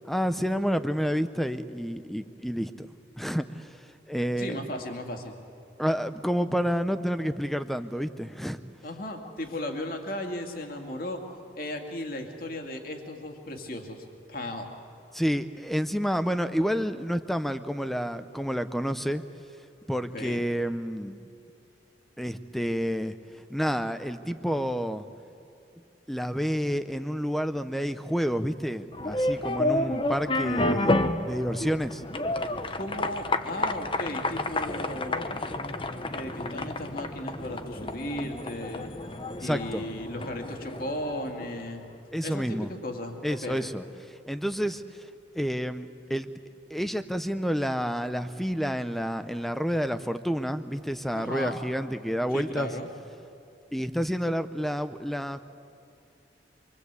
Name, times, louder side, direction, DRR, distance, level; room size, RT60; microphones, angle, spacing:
voice 1, 0.1-2.9 3.2-3.7 4.1-4.6 5.8-8.6 15.1-19.2 19.9-21.2 22.2-23.1 23.5-25.1 26.1-32.0 39.4-39.8 42.1-42.7 43.2-43.8 44.3-44.8 45.3-46.3 46.7-52.7 53.7-55.4, equal, ahead, 11 dB, 0.7 m, -29 dB
voice 2, 4.4-5.3 8.8-11.2 11.5-14.7 20.1-20.4 32.7-35.3 36.1-38.9 39.4-41.8 42.2-43.7 51.1-51.6 52.3-52.9, left 1 dB, 50° left, 3 dB, 2.4 m, -36 dB
sound 1, 28.9-41.7, left 2 dB, 30° left, 0.9 m, -30 dB
26.0 x 24.0 x 8.3 m, 2.6 s
head